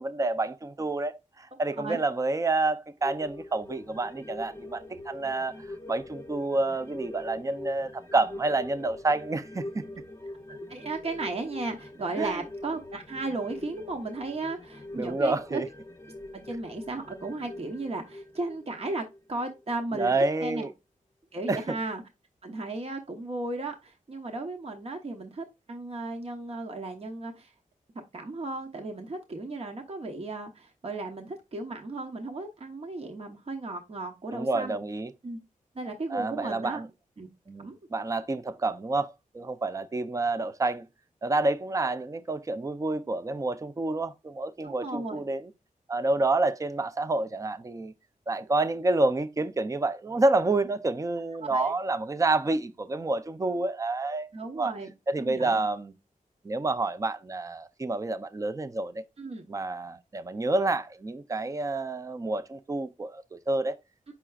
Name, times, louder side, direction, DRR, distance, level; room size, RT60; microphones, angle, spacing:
voice 1, 0.0-9.9 12.1-12.4 14.9-15.7 19.9-20.7 21.5-21.8 34.3-35.1 36.1-36.9 37.5-40.9 41.2-45.5 45.9-47.9 48.3-54.3 54.6-54.7 55.1-55.9 56.4-59.0 59.5-63.8, right 2 dB, 25° right, 0.5 m, -28 dB
sound 1, 3.0-19.8 20.1-20.2, left 1 dB, 20° left, 0.8 m, -43 dB
voice 2, 10.5-15.6 16.3-20.1 20.4-20.7 21.3-22.0 22.4-27.5 28.1-34.8 35.2-35.4 35.7-36.8 37.2-37.3 37.6-37.8 44.6-45.2 51.5-51.7 54.3-54.9 55.2-55.6 59.2-59.5, right 2 dB, 45° right, 0.9 m, -35 dB
7.4 x 5.7 x 2.4 m
wide cardioid pair, 130°, 14 cm